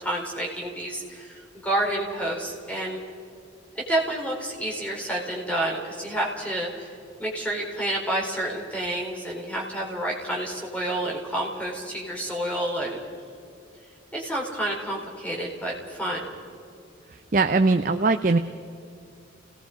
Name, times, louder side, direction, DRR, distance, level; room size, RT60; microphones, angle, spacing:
voice 1, 0.0-3.0 3.9-6.9 7.2-13.0 14.1-16.3, right 1 dB, 5° left, -2 dB, 3.9 m, -29 dB
voice 2, 17.1-18.4, right 3 dB, 45° right, 7 dB, 0.6 m, -21 dB
29.0 x 18.5 x 5.1 m, 2.5 s
head